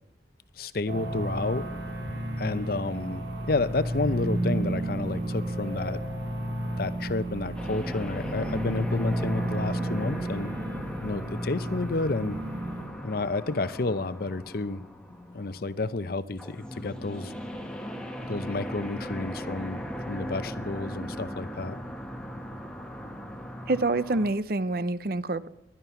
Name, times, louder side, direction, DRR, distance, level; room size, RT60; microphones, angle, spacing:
voice 1, 0.6-1.6 2.4-6.0 6.8-10.5 11.0-12.4 13.0-14.8 15.3-17.3 18.2-21.8, left 3 dB, 55° left, 15 dB, 0.7 m, -30 dB
sound 1, 0.9-12.8, right 1 dB, 85° right, 4.2 m, -32 dB
sound 2, 7.6-24.3, equal, 5° left, 1.4 m, -38 dB
voice 2, 23.7-25.5, right 2 dB, 55° right, 15 dB, 0.7 m, -27 dB
20.5 x 11.5 x 5.9 m, 0.87 s
head